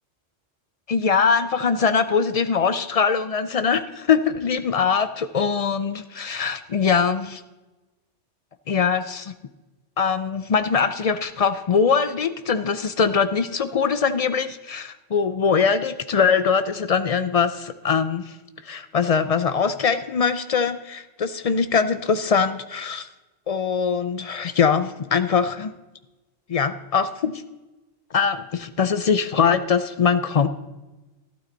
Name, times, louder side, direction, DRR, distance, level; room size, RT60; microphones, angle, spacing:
voice 1, 0.9-7.4 8.7-9.3 10.0-18.4 18.6-23.1 23.5-25.7 26.5-27.4 28.1-30.5, left 6 dB, 65° left, 12 dB, 0.3 m, -22 dB
12.0 x 12.0 x 3.9 m, 1.1 s
omnidirectional pair, 1.2 m